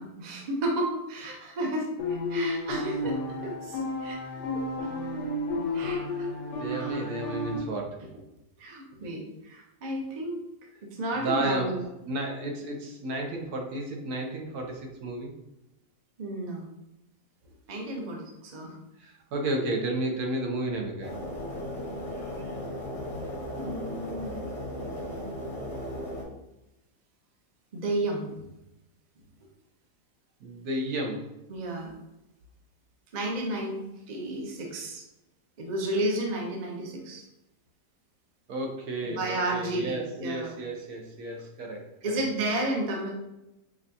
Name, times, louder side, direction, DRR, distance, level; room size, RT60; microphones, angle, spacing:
voice 1, 0.0-4.2 4.5-4.9 5.7-6.3 6.7-7.0 8.6-10.4 10.9-11.8 16.2-16.6 17.7-18.8 23.6-24.3 27.7-28.4 31.5-31.9 33.1-35.0 35.6-37.2 39.0-40.5 42.0-43.1, right 1 dB, 50° right, 0 dB, 0.5 m, -32 dB
sound 1, 2.0-7.6, left 2 dB, 85° left, 1.3 m, -32 dB
voice 2, 6.5-8.0 11.1-15.3 19.0-21.1 30.4-31.3 38.5-42.5, right 1 dB, 75° right, 2 dB, 1.1 m, -32 dB
sound 2, 21.0-26.2, equal, 30° left, 0.6 m, -36 dB
5.1 x 2.2 x 2.6 m, 0.92 s
omnidirectional pair, 1.8 m